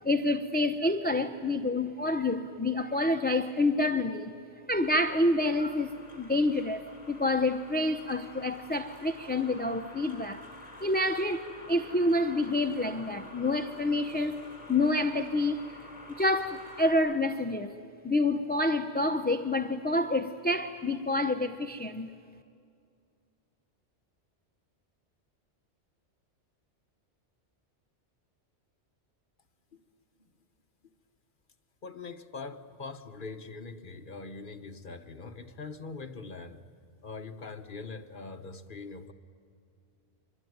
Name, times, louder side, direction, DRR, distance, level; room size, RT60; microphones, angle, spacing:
voice 1, 0.0-4.3 4.7-10.5 10.8-14.4 14.7-15.6 16.2-17.8 18.0-22.1, left 2 dB, 10° left, 0.5 m, -28 dB
sound 1, 4.7-16.9, left 2 dB, 30° left, 4.2 m, -49 dB
voice 2, 31.8-36.6 37.0-39.1, left 4 dB, 50° left, 1.2 m, -42 dB
24.5 x 23.0 x 9.4 m
omnidirectional pair, 1.2 m